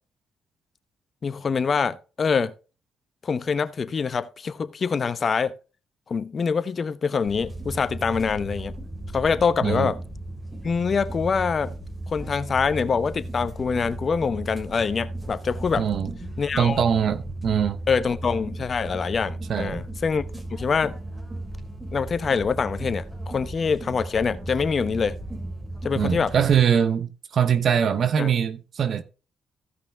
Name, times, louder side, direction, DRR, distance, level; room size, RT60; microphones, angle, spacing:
voice 1, 1.2-2.5 3.2-5.5 6.1-8.7 9.1-10.0 10.6-11.7 12.1-15.9 16.4-16.8 17.9-20.2 20.5-20.9 21.9-25.2 25.8-26.3 28.2-28.3, left 5 dB, 40° left, 0.8 m, -25 dB
sound 1, 7.3-26.6, right 1 dB, 15° right, 2.4 m, -35 dB
voice 2, 9.6-9.9 15.8-16.1 16.6-17.8 19.5-19.8 25.9-29.0, right 8 dB, 55° right, 0.9 m, -22 dB
15.5 x 5.6 x 3.4 m
cardioid pair, 90°, 0 cm